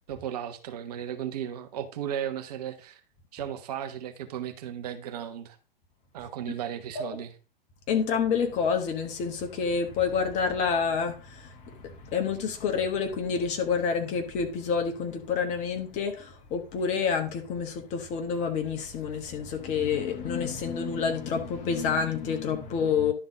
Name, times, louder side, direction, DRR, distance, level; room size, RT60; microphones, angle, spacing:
voice 1, 0.1-3.0 3.3-5.6 6.1-7.3, right 9 dB, 40° right, 1.1 m, -35 dB
voice 2, 7.9-23.1, left 6 dB, 25° left, 1.2 m, -28 dB
11.0 x 4.0 x 4.8 m
figure-of-eight pair, 115°, 30 cm